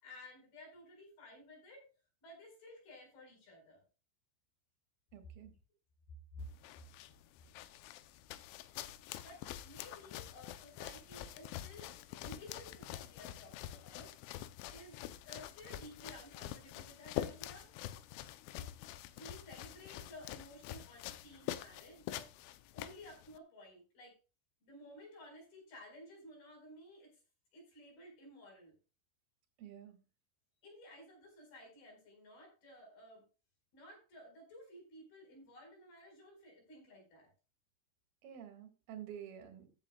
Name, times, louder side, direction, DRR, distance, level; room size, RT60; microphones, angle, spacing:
voice 1, 0.0-1.9 2.2-3.8 6.3-6.4 9.2-17.7 18.5-18.7 19.1-22.3 22.7-24.2 24.6-27.1 27.5-28.7 30.6-33.2 33.7-37.3, left 1 dB, 50° left, 6.3 m, -55 dB
voice 2, 5.1-5.5 29.6-30.0 38.2-39.7, right 9 dB, 60° right, 3.1 m, -49 dB
sound 1, 6.4-23.4, left 13 dB, 80° left, 2.8 m, -46 dB
14.5 x 10.0 x 2.3 m
omnidirectional pair, 5.9 m